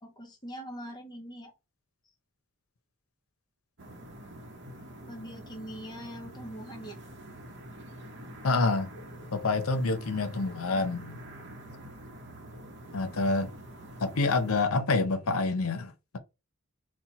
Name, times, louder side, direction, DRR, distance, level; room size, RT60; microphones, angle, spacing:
voice 1, 0.0-1.5 5.1-7.0, equal, 20° left, 0.8 m, -42 dB
sound 1, 3.8-14.6, right 1 dB, 55° right, 0.8 m, -46 dB
voice 2, 8.4-8.9 9.3-11.2 12.9-13.5 14.0-16.2, left 3 dB, 80° left, 0.7 m, -27 dB
4.3 x 2.2 x 4.1 m
head